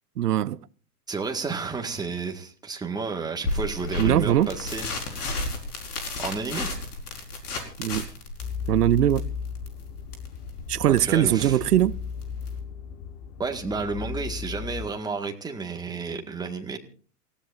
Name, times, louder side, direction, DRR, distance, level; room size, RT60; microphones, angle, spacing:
voice 1, 0.2-0.6 4.0-4.6 7.8-8.1 8.7-9.3 10.7-12.0, right 12 dB, 70° right, 0.7 m, -21 dB
voice 2, 1.1-5.3 6.2-6.7 10.9-11.5 13.4-16.8, right 4 dB, 10° right, 1.8 m, -31 dB
sound 1, 3.4-12.6, left 2 dB, 70° left, 5.1 m, -33 dB
sound 2, 8.4-14.9, left 6 dB, 40° left, 1.5 m, -36 dB
28.5 x 16.5 x 2.6 m
figure-of-eight pair, 100°, 48 cm